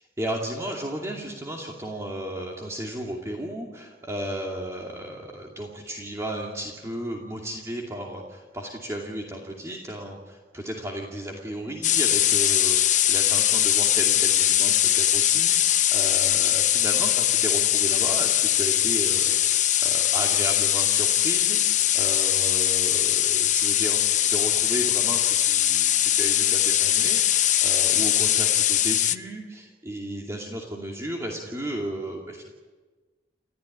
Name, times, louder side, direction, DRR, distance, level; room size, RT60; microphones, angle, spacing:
voice 1, 0.2-24.0 24.3-32.4, right 1 dB, 15° right, -1 dB, 2.6 m, -34 dB
sound 1, 11.8-29.2, left 11 dB, 45° left, 0.7 m, -21 dB
30.0 x 14.0 x 9.9 m, 1.3 s
head